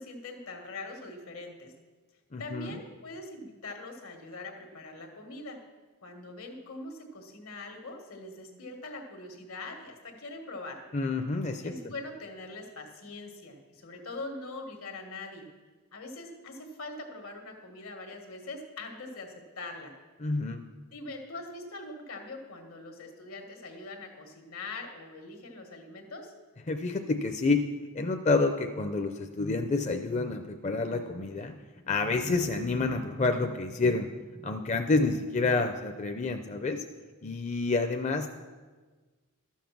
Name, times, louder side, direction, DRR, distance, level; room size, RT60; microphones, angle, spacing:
voice 1, 0.0-1.7 2.4-5.6 6.0-10.8 11.6-15.5 15.9-19.9 20.9-26.3, left 2 dB, 80° left, 4 dB, 1.7 m, -42 dB
voice 2, 2.3-2.7 10.9-11.9 20.2-20.6 26.7-27.7 27.9-31.5 31.9-34.1 34.3-36.8 37.2-38.3, left 3 dB, 35° left, 6 dB, 0.5 m, -28 dB
12.5 x 7.3 x 5.9 m, 1.4 s
head